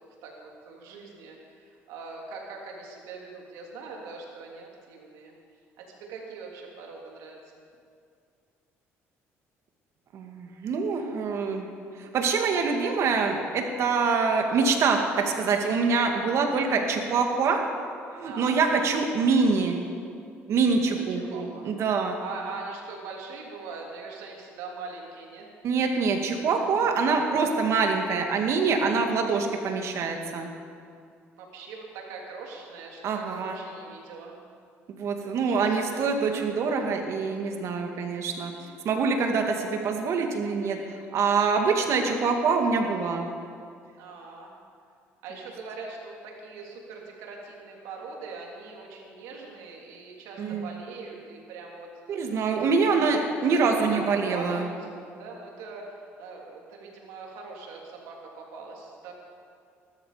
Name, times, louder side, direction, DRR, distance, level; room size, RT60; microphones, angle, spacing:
voice 1, 0.2-5.3 5.8-7.4 16.0-16.3 18.2-19.1 20.8-21.7 22.2-25.5 31.4-34.4 35.3-36.1 41.9-42.2 44.0-44.6 45.2-53.0 53.5-59.1, right 4 dB, 90° right, -1 dB, 3.2 m, -42 dB
voice 2, 10.1-11.7 12.0-17.6 18.1-19.8 20.5-22.2 25.6-30.5 33.0-33.6 34.9-40.8 41.1-43.3 50.4-50.7 52.1-54.7, right 4 dB, 60° right, 3 dB, 2.2 m, -25 dB
19.5 x 13.0 x 5.1 m, 2.3 s
cardioid pair, 95°, 5 cm